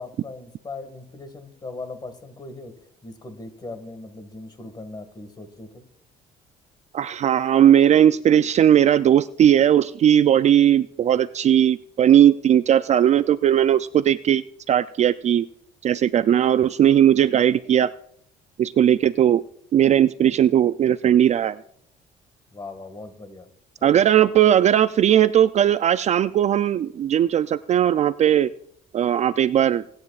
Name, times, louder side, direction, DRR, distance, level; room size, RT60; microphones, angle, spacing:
voice 1, 0.0-5.8 22.5-23.5 23.8-24.0, left 3 dB, 25° left, 8 dB, 1.8 m, -39 dB
voice 2, 6.9-15.4 15.8-17.9 18.6-19.4 19.7-21.6 23.8-28.5 28.9-29.8, right 10 dB, 40° right, 14 dB, 0.4 m, -18 dB
24.5 x 9.7 x 2.4 m, 0.66 s
cardioid pair, 110°, 17 cm